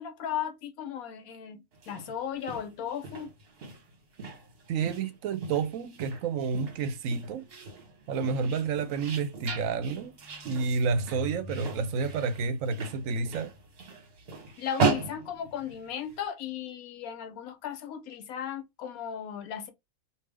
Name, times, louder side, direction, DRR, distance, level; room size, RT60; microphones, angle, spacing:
voice 1, 0.0-3.3 14.6-19.7, left 9 dB, 75° left, 1.1 m, -36 dB
sound 1, 1.7-16.2, right 4 dB, 45° right, 1.0 m, -37 dB
voice 2, 4.7-7.5 8.1-10.2 10.5-13.5, right 5 dB, 70° right, 1.0 m, -30 dB
sound 2, 10.7-13.6, left 1 dB, 50° left, 1.2 m, -45 dB
3.4 x 2.6 x 3.3 m
omnidirectional pair, 1.6 m